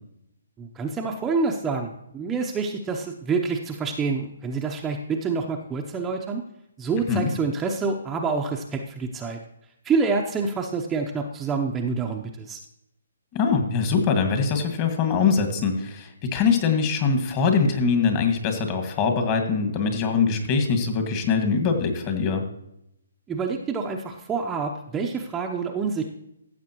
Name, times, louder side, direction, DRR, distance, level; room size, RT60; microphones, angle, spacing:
voice 1, 0.6-6.4 6.8-9.4 9.8-12.6 23.3-26.0, right 4 dB, 15° right, 1 dB, 0.7 m, -27 dB
voice 2, 13.3-22.4, left 5 dB, 30° left, 5 dB, 1.8 m, -23 dB
15.0 x 7.4 x 3.0 m, 0.79 s
hypercardioid pair, 145°, 0 cm